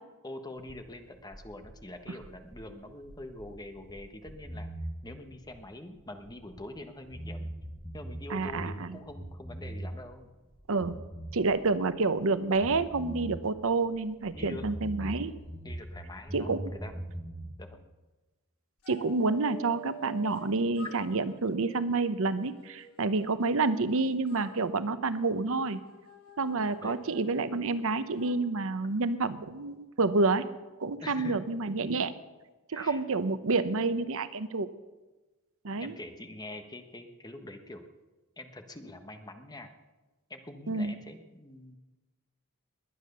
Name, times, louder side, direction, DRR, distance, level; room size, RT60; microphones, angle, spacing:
voice 1, 0.2-4.7 5.0-7.5 7.9-10.3 14.3-14.7 15.6-17.2 17.6-17.9 26.8-27.0 31.0-31.4 32.7-33.0 35.8-37.9 38.4-39.7 40.3-41.8, left 1 dB, 20° left, 6 dB, 1.3 m, -45 dB
sound 1, 0.6-6.8 7.0-10.1 10.4-12.3 12.5-16.0 16.3-17.5, right 1 dB, ahead, 2.4 m, -41 dB
voice 2, 8.3-9.0 10.7-11.0 11.3-15.3 16.3-16.6 18.9-25.8 26.4-30.4 30.8-32.1 32.7-34.7 35.6-35.9 40.7-40.9, right 3 dB, 65° right, 13 dB, 0.8 m, -29 dB
sound 2, 18.8-20.5 20.8-23.9 24.3-28.3, equal, 75° left, 3.5 m, -49 dB
20.5 x 9.4 x 6.8 m, 1.2 s
head